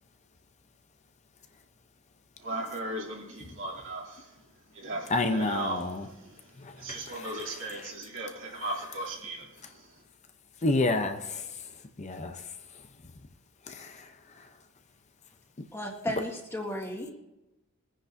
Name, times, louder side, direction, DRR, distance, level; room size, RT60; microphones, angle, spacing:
voice 1, 2.4-4.3 4.7-6.0 6.8-9.5, right 2 dB, 65° right, 2.9 m, -36 dB
voice 2, 5.1-6.1 6.9-7.3 10.6-11.4 12.0-12.4 13.7-13.9, left 2 dB, 35° left, 0.7 m, -28 dB
voice 3, 15.7-17.1, equal, 15° left, 1.8 m, -34 dB
22.0 x 10.0 x 2.7 m
head